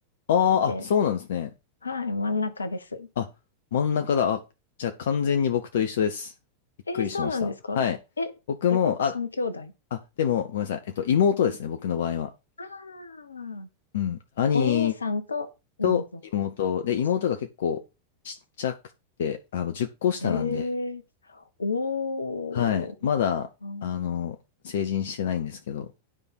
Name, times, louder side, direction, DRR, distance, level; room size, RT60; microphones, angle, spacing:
voice 1, 0.3-1.5 3.2-3.3 3.7-4.4 4.8-6.3 7.0-7.4 7.7-8.0 8.6-9.1 10.2-12.3 13.9-14.9 15.8-16.0 16.3-17.8 18.2-18.7 19.2-20.6 22.5-23.5 23.8-24.4 24.6-25.9, left 8 dB, 60° left, 0.8 m, -25 dB
voice 2, 1.8-3.1 6.9-7.9 8.2-8.3 8.7-9.7 12.6-13.7 14.5-15.5 15.8-16.0 20.2-23.1 23.6-23.9, left 3 dB, 75° left, 1.2 m, -31 dB
9.8 x 5.2 x 6.1 m
figure-of-eight pair, 90°, 0 cm